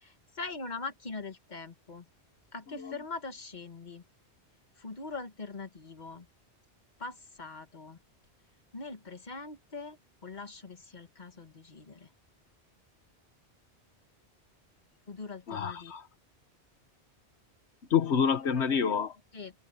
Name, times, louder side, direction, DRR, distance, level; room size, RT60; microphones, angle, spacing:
voice 1, 0.0-2.1 2.5-4.0 4.8-6.3 7.0-8.0 8.7-10.0 10.2-12.1 15.1-15.9 19.3-19.5, left 3 dB, 40° left, 1.7 m, -42 dB
voice 2, 15.5-16.0 17.9-19.2, left 7 dB, 85° left, 1.4 m, -27 dB
omnidirectional pair, 1.1 m